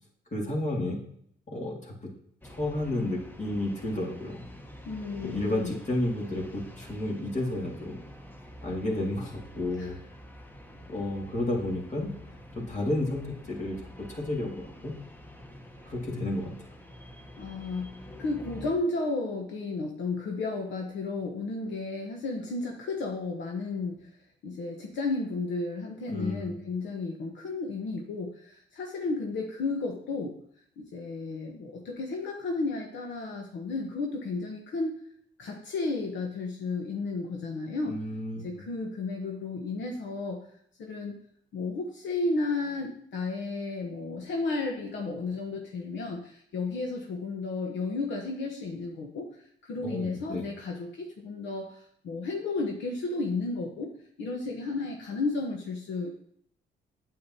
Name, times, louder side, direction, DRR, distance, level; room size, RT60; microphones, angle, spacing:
voice 1, 0.3-1.1 1.5-2.1 2.4-4.5 5.2-8.0 8.6-10.0 10.9-12.2 12.5-14.9 15.8-16.7 26.1-26.6 37.8-38.6 49.8-50.4, left 1 dB, 35° left, -1 dB, 2.3 m, -32 dB
sound 1, 2.4-18.8, equal, 10° left, 1.1 m, -47 dB
voice 2, 4.8-5.7 9.8-9.9 17.4-24.1 24.4-30.3 30.8-35.0 35.4-37.9 38.4-40.4 40.8-41.1 41.5-49.3 49.6-53.9 54.2-56.1, left 3 dB, 70° left, 1 dB, 1.1 m, -33 dB
8.5 x 7.9 x 2.8 m, 0.66 s
cardioid pair, 90°, 20 cm